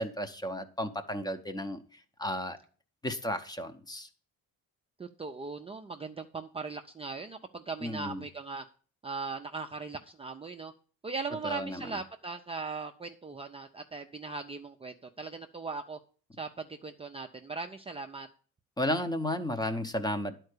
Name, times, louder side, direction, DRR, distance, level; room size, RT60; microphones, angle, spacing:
voice 1, 0.0-2.6 3.0-4.1 7.8-8.2 11.4-11.8 18.8-20.4, left 1 dB, 10° left, 9 dB, 0.7 m, -33 dB
voice 2, 5.0-8.6 9.0-10.7 11.0-16.0 16.4-18.3, right 4 dB, 20° right, 4 dB, 0.5 m, -39 dB
11.0 x 4.5 x 6.6 m, 0.42 s
cardioid pair, 140°, 33 cm